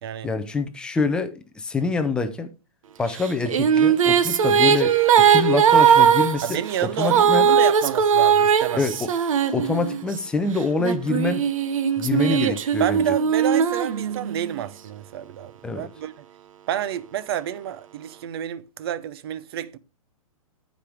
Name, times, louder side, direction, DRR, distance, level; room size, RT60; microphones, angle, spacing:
voice 1, 0.2-2.5 3.0-7.5 8.7-9.1 9.5-11.5 12.0-13.0 15.6-15.9, left 4 dB, 5° left, 0.4 m, -26 dB
Female singing, 3.2-10.1 10.8-14.5, right 8 dB, 65° right, 1.0 m, -19 dB
voice 2, 6.4-8.8 12.2-16.1 16.7-19.8, right 10 dB, 45° right, 0.7 m, -29 dB
14.5 x 5.1 x 3.4 m
hypercardioid pair, 160°, 18 cm